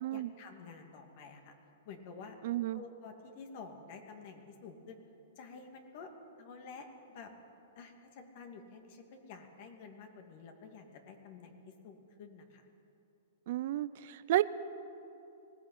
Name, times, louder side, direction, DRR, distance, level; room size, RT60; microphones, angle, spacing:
voice 1, 0.1-1.6 1.8-2.4 2.7-5.0 5.4-6.1 6.4-7.3 7.8-12.7, left 5 dB, 50° left, 4 dB, 2.5 m, -50 dB
voice 2, 2.4-2.8 13.5-14.4, right 14 dB, 60° right, 15 dB, 0.6 m, -32 dB
20.0 x 16.0 x 8.9 m, 2.8 s
hypercardioid pair, 135°, 0 cm